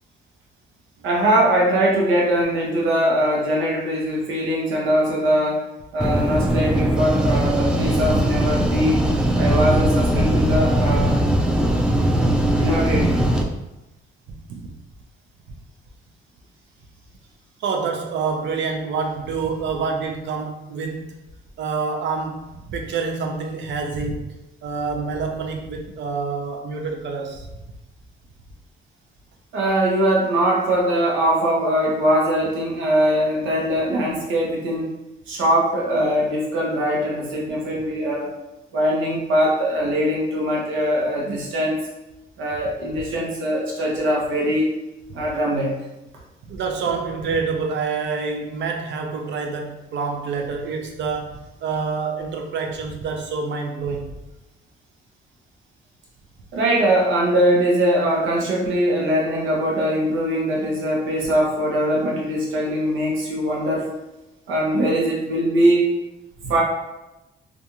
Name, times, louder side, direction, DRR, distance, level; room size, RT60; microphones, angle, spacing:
voice 1, 1.0-5.6 5.9-9.1 9.3-11.2 12.0-12.1 12.6-13.3 29.5-34.9 35.3-38.3 38.7-41.8 42.4-44.7 45.1-45.8 56.5-63.9 64.5-65.9 66.5-66.6, equal, 90° right, -3 dB, 0.8 m, -21 dB
sound 1, 6.0-13.4, right 1 dB, 5° right, 0.3 m, -20 dB
voice 2, 17.6-21.1 21.6-24.4 24.6-27.5 46.5-54.1 66.4-66.5, right 4 dB, 65° right, 2 dB, 0.5 m, -27 dB
2.5 x 2.3 x 2.9 m, 0.96 s
cardioid pair, 90°, 20 cm